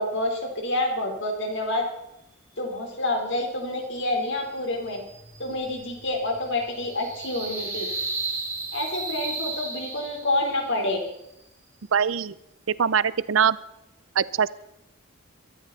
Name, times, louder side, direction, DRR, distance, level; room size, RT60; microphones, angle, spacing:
voice 1, 0.0-1.8 2.6-5.0 5.4-7.9 8.7-11.0, left 1 dB, 65° left, 2 dB, 3.9 m, -28 dB
sound 1, 4.6-10.6, right 3 dB, 15° right, 3.4 m, -34 dB
voice 2, 11.9-12.3 12.7-13.6 14.2-14.5, right 7 dB, 70° right, 19 dB, 0.6 m, -22 dB
22.0 x 13.5 x 4.1 m, 0.85 s
head